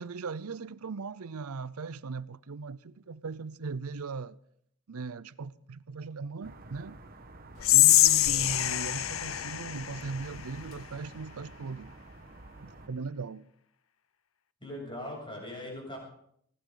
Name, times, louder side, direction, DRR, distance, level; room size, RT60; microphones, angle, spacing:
voice 1, 0.0-4.4 4.9-7.0 7.7-11.9 12.6-13.5, right 4 dB, 80° right, 0.6 m, -39 dB
sound 1, 6.4-12.9, right 2 dB, 40° right, 1.2 m, -50 dB
Whispering, 7.6-10.8, left 14 dB, 65° left, 0.7 m, -24 dB
voice 2, 14.6-16.0, left 1 dB, 20° left, 7.3 m, -40 dB
20.0 x 17.5 x 3.9 m
head